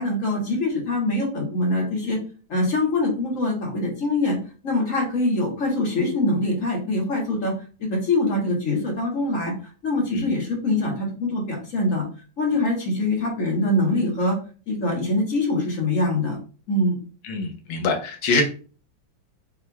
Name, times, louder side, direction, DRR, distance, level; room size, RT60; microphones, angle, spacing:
voice 1, 0.0-2.2 2.5-4.4 4.6-7.5 7.8-9.5 9.8-12.0 12.4-14.4 14.7-16.4 16.7-17.0, left 2 dB, 45° left, -1 dB, 1.6 m, -23 dB
voice 2, 17.3-18.5, left 3 dB, 75° left, 5 dB, 1.6 m, -24 dB
5.8 x 3.3 x 2.3 m, 0.38 s
omnidirectional pair, 2.2 m